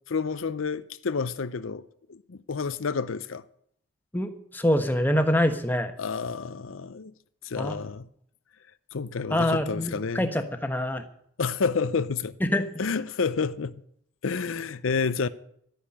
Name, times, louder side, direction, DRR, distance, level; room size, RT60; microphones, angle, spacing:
voice 1, 0.1-3.4 6.0-7.1 7.4-8.1 8.9-10.3 11.4-12.3 12.8-13.7 14.2-15.3, left 5 dB, 75° left, 0.6 m, -29 dB
voice 2, 4.1-5.9 7.5-7.7 9.3-11.0 12.4-12.7, left 1 dB, 10° left, 1.2 m, -25 dB
12.5 x 9.9 x 8.6 m
head